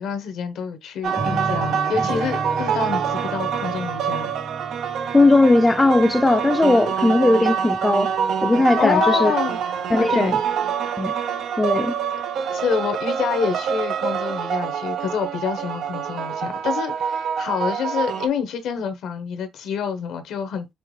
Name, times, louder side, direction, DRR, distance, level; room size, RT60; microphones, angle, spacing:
voice 1, 0.0-4.3 8.8-10.3 12.5-20.7, left 6 dB, 80° left, 0.9 m, -27 dB
sound 1, 1.0-18.3, right 7 dB, 75° right, 0.4 m, -26 dB
sound 2, 1.2-7.1, right 2 dB, 15° right, 0.7 m, -33 dB
voice 2, 5.1-8.1 8.4-9.3 9.9-10.4 11.0-11.1 11.6-12.0, left 2 dB, 15° left, 0.4 m, -17 dB
5.6 x 2.1 x 3.1 m
cardioid pair, 90°, 0 cm